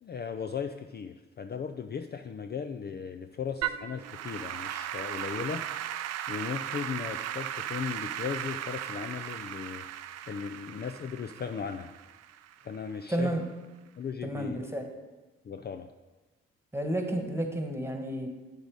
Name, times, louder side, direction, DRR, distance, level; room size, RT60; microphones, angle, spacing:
voice 1, 0.0-11.9 12.6-13.3 14.0-14.6 15.4-15.9, left 6 dB, 35° left, 7 dB, 0.5 m, -37 dB
Applause / Keyboard (musical), 3.6-12.9, right 11 dB, 60° right, 0.5 m, -37 dB
voice 2, 13.1-13.5 14.2-14.9 16.7-18.3, right 1 dB, 10° right, 5 dB, 1.6 m, -31 dB
8.9 x 6.3 x 4.8 m, 1.2 s
hypercardioid pair, 40°, 30 cm